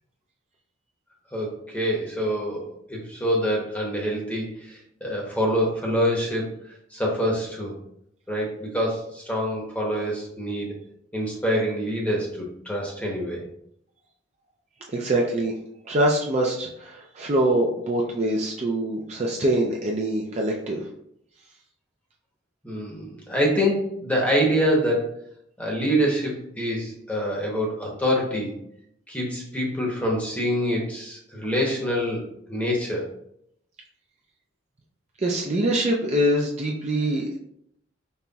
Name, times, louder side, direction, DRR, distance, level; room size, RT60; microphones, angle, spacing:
voice 1, 1.3-6.5 6.9-7.7 8.3-10.7 11.1-13.4 22.6-25.1 25.6-28.6 29.1-33.1, equal, 5° left, -2 dB, 0.8 m, -26 dB
voice 2, 14.9-15.5 15.8-20.9 35.2-37.4, right 1 dB, 35° right, -1 dB, 0.4 m, -24 dB
5.3 x 3.0 x 2.3 m, 0.74 s
head